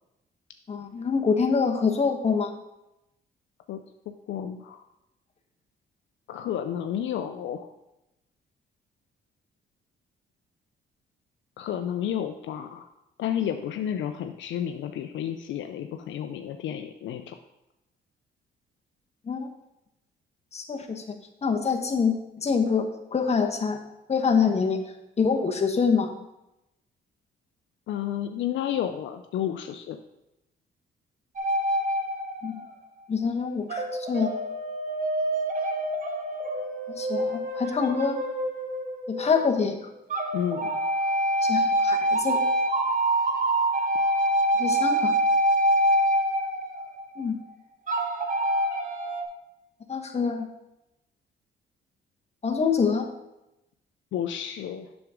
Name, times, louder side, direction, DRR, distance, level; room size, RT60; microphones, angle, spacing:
voice 1, 0.7-2.5 19.3-19.5 20.5-21.0 21.4-23.8 24.1-24.8 25.2-26.1 32.4-32.6 33.1-34.3 36.9-38.2 39.1-39.8 41.4-42.4 44.6-45.1 47.2-47.4 49.9-50.5 52.4-53.1, left 5 dB, 35° left, 3 dB, 1.0 m, -25 dB
voice 2, 4.3-4.8 6.3-7.7 11.6-12.9 13.2-17.4 27.9-30.0 40.3-40.8 54.1-54.9, left 10 dB, 70° left, 7 dB, 0.5 m, -31 dB
sound 1, 31.4-32.7 33.7-39.6 40.1-47.2 47.9-49.2, right 1 dB, 40° right, 1.2 m, -26 dB
7.7 x 6.2 x 3.6 m, 0.91 s
cardioid pair, 90°, 20 cm